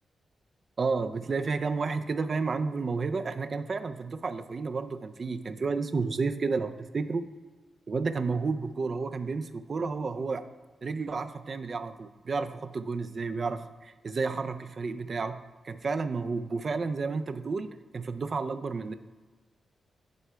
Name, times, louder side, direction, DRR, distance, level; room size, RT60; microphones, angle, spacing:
voice 1, 0.8-7.2 7.9-10.5 10.8-15.4 15.6-17.7 17.9-18.9, right 4 dB, 40° right, 10 dB, 0.4 m, -31 dB
9.2 x 3.3 x 5.6 m, 1.3 s
wide cardioid pair, 145°, 0 cm